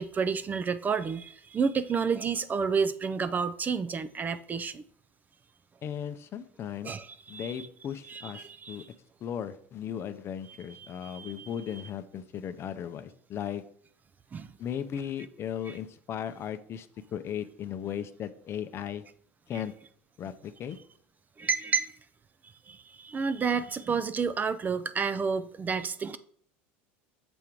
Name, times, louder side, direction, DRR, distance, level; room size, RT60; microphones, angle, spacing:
voice 1, 0.0-4.8 6.8-7.7 8.0-8.9 10.7-11.5 14.3-14.5 15.7-15.8 21.4-21.9 22.4-26.2, right 5 dB, 25° right, 0.4 m, -30 dB
voice 2, 5.8-6.9 7.3-8.8 9.2-13.6 14.6-19.0 19.5-19.7 20.2-20.8, left 9 dB, 40° left, 0.5 m, -36 dB
7.0 x 3.6 x 4.5 m
supercardioid pair, 100°, 7 cm